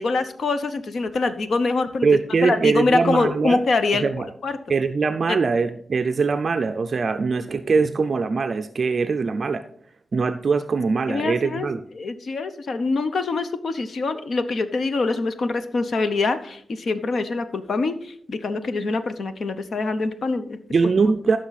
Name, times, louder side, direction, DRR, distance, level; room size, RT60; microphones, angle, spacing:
voice 1, 0.0-2.1 2.4-4.1 4.4-4.5 5.3-5.4 11.1-11.7 12.0-20.6, left 3 dB, 55° left, 10 dB, 0.8 m, -24 dB
voice 2, 2.0-3.6 3.9-4.3 4.7-9.6 10.1-11.8 20.7-21.4, right 4 dB, 45° right, 8 dB, 0.4 m, -22 dB
14.5 x 6.2 x 4.1 m, 0.64 s
wide cardioid pair, 160°, 0 cm